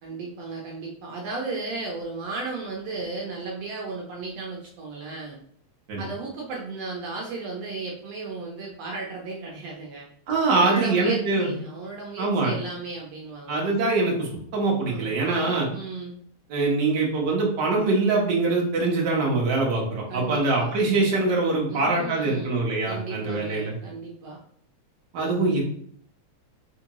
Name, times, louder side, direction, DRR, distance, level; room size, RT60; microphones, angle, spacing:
voice 1, 0.0-5.4 6.0-10.0 10.5-13.6 14.9-16.2 20.1-20.7 21.7-22.6 22.9-24.4, right 3 dB, 70° right, -2 dB, 1.7 m, -35 dB
voice 2, 10.3-11.5 12.2-12.5 13.5-15.7 16.5-23.7 25.1-25.6, right 3 dB, 55° right, -2 dB, 1.3 m, -23 dB
4.5 x 3.6 x 3.0 m, 0.62 s
omnidirectional pair, 3.3 m